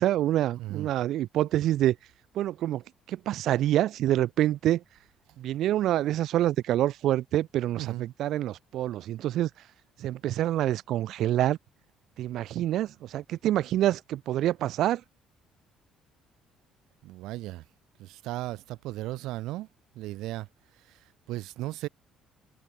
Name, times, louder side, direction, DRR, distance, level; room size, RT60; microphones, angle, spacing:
voice 1, 0.0-2.0 2.3-2.8 3.1-4.8 5.4-9.5 10.0-11.6 12.2-15.0, right 13 dB, 60° right, 2.8 m, -26 dB
voice 2, 0.6-0.9 7.7-8.1 17.0-17.6 18.0-19.7 19.9-20.5 20.9-21.9, right 17 dB, 80° right, 6.3 m, -36 dB
cardioid pair, 150°, 0 cm